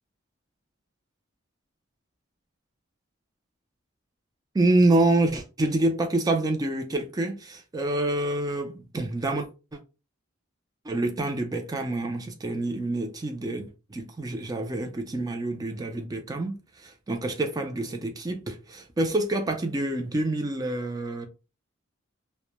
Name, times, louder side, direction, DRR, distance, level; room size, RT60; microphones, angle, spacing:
voice 1, 4.5-9.8 10.8-21.3, right 2 dB, 20° right, 0.3 m, -27 dB
2.1 x 2.0 x 2.8 m
head